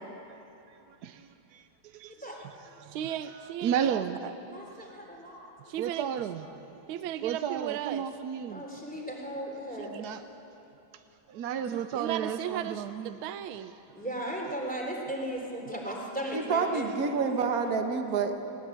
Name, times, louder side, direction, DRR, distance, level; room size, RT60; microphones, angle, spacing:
voice 1, 1.0-1.6 1.9-2.3 2.8-3.0 3.6-4.2 5.8-6.4 7.2-8.6 10.0-10.2 11.3-13.2, right 8 dB, 65° right, 8 dB, 1.0 m, -33 dB
voice 2, 2.9-4.3 5.7-6.1 6.9-8.1 9.8-10.0 11.7-13.7, right 11 dB, 85° right, 11 dB, 1.5 m, -36 dB
voice 3, 4.5-5.5 8.5-9.9 13.9-16.9, right 1 dB, 5° left, -1 dB, 3.4 m, -36 dB
voice 4, 16.3-18.3, right 5 dB, 50° right, 5 dB, 1.6 m, -28 dB
19.5 x 19.0 x 8.5 m, 3.0 s
omnidirectional pair, 2.2 m